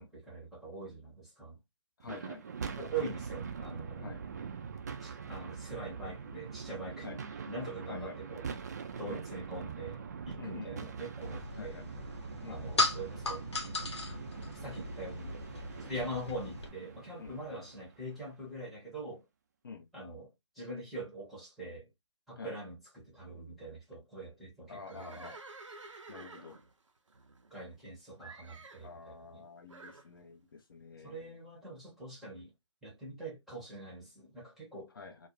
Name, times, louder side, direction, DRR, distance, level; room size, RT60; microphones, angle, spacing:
voice 1, 0.0-1.6 2.8-4.1 5.0-11.8 12.5-13.5 14.6-15.4 15.8-19.2 19.9-21.9 22.3-25.3 27.5-29.5 31.0-32.5 32.8-34.9, right 2 dB, ahead, 0.8 m, -43 dB
voice 2, 2.0-2.4 4.0-4.2 7.0-7.2 7.9-8.2 9.1-9.2 10.4-10.9 11.5-11.9 12.4-12.6 17.2-17.7 19.6-19.9 22.4-22.6 24.7-25.4 26.1-26.6 28.8-31.4 34.9-35.3, left 5 dB, 45° left, 0.5 m, -47 dB
sound 1, 2.0-18.4, right 6 dB, 35° right, 0.4 m, -43 dB
sound 2, 11.2-16.7, left 3 dB, 65° left, 0.9 m, -37 dB
Livestock farm animals working animals, 24.8-27.9 28.2-28.9 29.7-30.1, right 3 dB, 85° right, 0.6 m, -51 dB
2.4 x 2.0 x 2.9 m
figure-of-eight pair, 150°, 15 cm